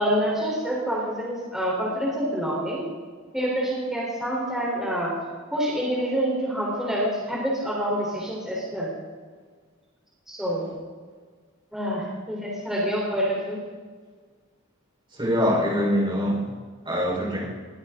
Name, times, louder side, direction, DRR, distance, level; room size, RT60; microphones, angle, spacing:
voice 1, 0.0-2.8 3.3-5.1 5.5-8.9 10.3-10.7 11.7-13.6, equal, ahead, -6 dB, 4.1 m, -27 dB
voice 2, 15.2-16.4 16.8-17.5, equal, 25° right, -4 dB, 4.8 m, -23 dB
21.5 x 16.0 x 3.9 m, 1.5 s
head